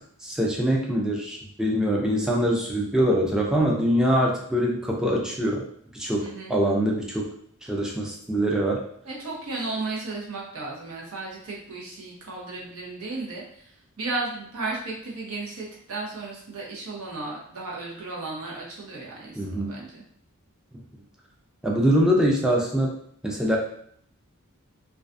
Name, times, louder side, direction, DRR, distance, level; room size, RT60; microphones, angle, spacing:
voice 1, 0.2-5.6 5.9-7.3 7.7-8.8 19.4-19.7 21.6-22.9 23.2-23.6, equal, 5° right, -2 dB, 0.3 m, -23 dB
voice 2, 6.2-6.5 9.0-20.0, right 3 dB, 85° right, -3 dB, 0.8 m, -34 dB
2.3 x 2.2 x 2.5 m, 0.65 s
head